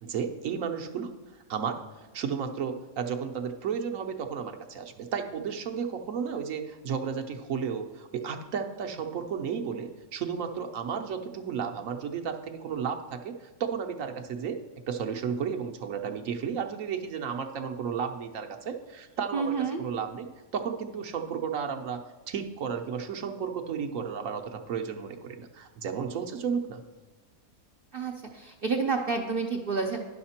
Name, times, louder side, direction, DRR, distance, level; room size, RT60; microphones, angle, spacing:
voice 1, 0.0-1.1 1.5-1.8 2.1-14.6 14.9-26.8, right 7 dB, 65° right, 5 dB, 1.1 m, -33 dB
voice 2, 19.3-19.8 27.9-30.0, right 4 dB, 50° right, 1 dB, 0.8 m, -29 dB
10.0 x 6.5 x 4.3 m, 1.3 s
omnidirectional pair, 1.6 m